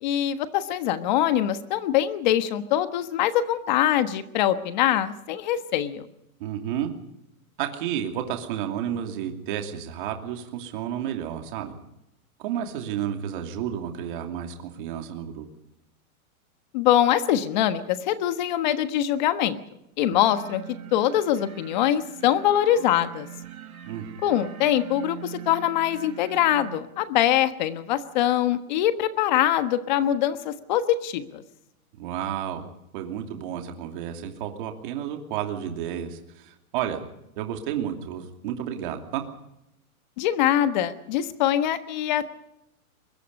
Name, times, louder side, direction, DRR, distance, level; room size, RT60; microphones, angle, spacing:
voice 1, 0.0-6.1 16.7-19.6 20.0-20.6 20.9-23.3 24.2-31.4 40.2-42.2, left 11 dB, 30° left, 11 dB, 1.3 m, -23 dB
voice 2, 6.4-6.9 7.6-11.7 12.4-15.5 23.9-24.2 32.0-32.6 32.9-37.0 37.4-39.2, right 10 dB, 35° right, 4 dB, 2.8 m, -31 dB
sound 1, 20.1-26.8, right 10 dB, 80° right, 4.2 m, -42 dB
24.0 x 22.0 x 5.4 m, 0.85 s
supercardioid pair, 175°, 43 cm